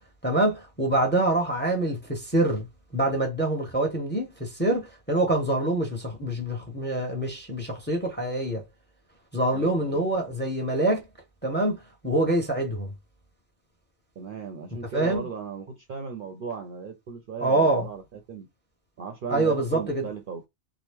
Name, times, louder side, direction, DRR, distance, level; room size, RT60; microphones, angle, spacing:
voice 1, 0.2-2.7 2.9-8.6 9.3-11.0 11.4-12.9 14.9-15.3 17.4-17.8 19.3-20.1, right 2 dB, 10° left, 0.8 m, -25 dB
voice 2, 9.5-10.1 14.2-18.5 19.0-20.5, right 6 dB, 60° right, 0.6 m, -37 dB
2.9 x 2.0 x 3.4 m
omnidirectional pair, 1.2 m